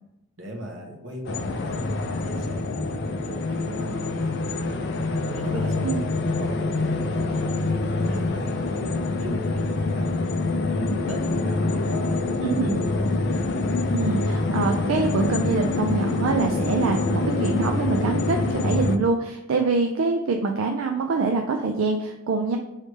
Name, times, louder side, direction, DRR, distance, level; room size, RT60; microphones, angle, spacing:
voice 1, 0.4-4.8 5.3-10.3 10.7-13.1, equal, 65° right, 0 dB, 1.0 m, -37 dB
sound 1, 1.2-19.0, left 3 dB, 55° left, 0.4 m, -25 dB
voice 2, 12.4-12.8 13.9-22.6, right 4 dB, 80° right, 4 dB, 0.4 m, -25 dB
3.3 x 3.2 x 4.2 m, 0.92 s
head